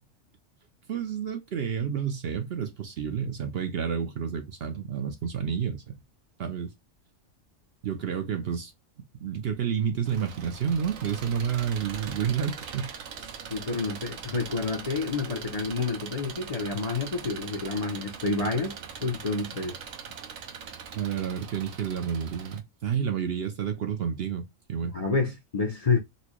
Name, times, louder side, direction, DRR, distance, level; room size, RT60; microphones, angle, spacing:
voice 1, 0.9-5.9 6.4-6.7 7.8-8.7 9.2-13.4 20.9-24.4 24.7-25.0, right 7 dB, 55° right, 0.8 m, -30 dB
Engine, 10.0-22.6, right 6 dB, 80° right, 1.2 m, -41 dB
voice 2, 13.5-18.7 19.0-19.8 24.8-26.0, left 4 dB, 35° left, 0.7 m, -29 dB
4.2 x 2.3 x 2.9 m
omnidirectional pair, 1.4 m